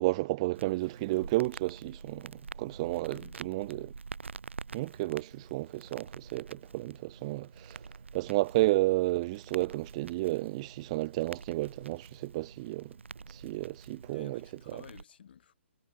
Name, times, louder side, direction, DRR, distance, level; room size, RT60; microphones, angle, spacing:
voice 1, 0.0-3.9 4.7-7.8 8.1-13.0 13.3-14.4 14.7-14.8, right 20 dB, 30° right, 0.9 m, -32 dB
Crackle, 0.5-15.0, right 4 dB, 65° right, 5.6 m, -47 dB
voice 2, 3.1-3.6 14.1-15.5, left 8 dB, 50° left, 6.6 m, -53 dB
figure-of-eight pair, 130°, 7 cm